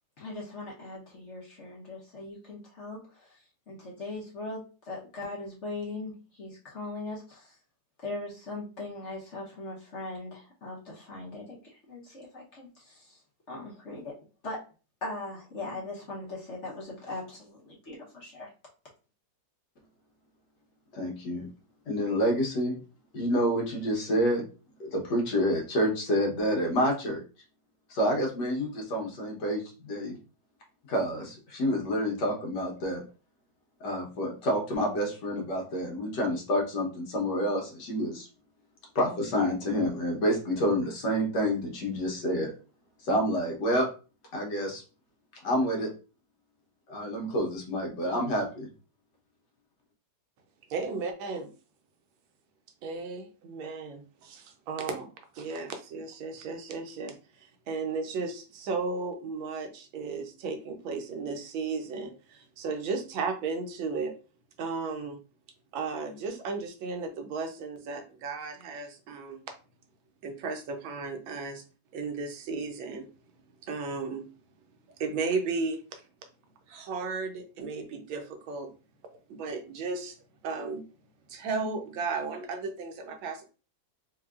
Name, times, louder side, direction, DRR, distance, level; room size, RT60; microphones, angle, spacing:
voice 1, 0.2-3.4 3.7-7.5 8.0-13.2 13.5-14.1 14.4-14.7 15.0-18.5, left 2 dB, 45° left, -4 dB, 1.0 m, -40 dB
voice 2, 20.9-21.5 21.9-22.8 23.1-24.4 24.8-27.2 27.9-30.2 30.9-33.0 33.8-38.3 38.9-42.5 43.0-43.9 44.3-44.8 45.4-45.9 46.9-48.7, equal, 65° left, 0 dB, 1.6 m, -28 dB
voice 3, 50.7-51.5 52.8-64.1 64.6-65.2 65.7-69.4 70.2-71.6 71.9-73.1 73.6-74.3 75.0-76.0 76.7-78.7 79.3-80.2 80.4-80.8 81.3-83.4, right 4 dB, 85° right, 5 dB, 1.5 m, -34 dB
4.6 x 2.8 x 2.4 m, 0.34 s
omnidirectional pair, 2.1 m